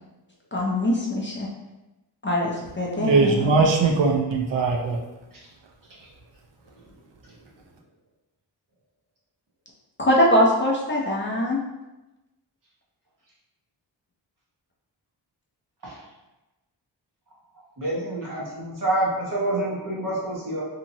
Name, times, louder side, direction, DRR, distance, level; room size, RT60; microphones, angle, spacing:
voice 1, 0.5-1.5 2.2-3.7 10.0-11.6, left 1 dB, 30° left, 0.3 m, -22 dB
voice 2, 2.9-5.0, right 3 dB, 75° right, 0.5 m, -20 dB
voice 3, 17.8-20.6, right 1 dB, 45° right, 0.9 m, -27 dB
2.8 x 2.8 x 2.6 m
wide cardioid pair, 180°, 45 cm